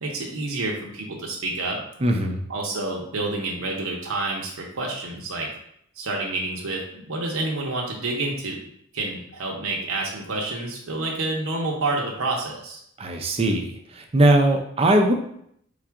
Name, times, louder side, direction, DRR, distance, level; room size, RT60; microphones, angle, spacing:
voice 1, 0.0-1.8 2.5-5.5 6.0-8.6 8.9-12.8, right 2 dB, 85° right, -1 dB, 0.8 m, -28 dB
voice 2, 2.0-2.4 13.0-15.1, right 1 dB, 30° right, 3 dB, 0.5 m, -20 dB
3.9 x 2.4 x 4.5 m, 0.71 s
head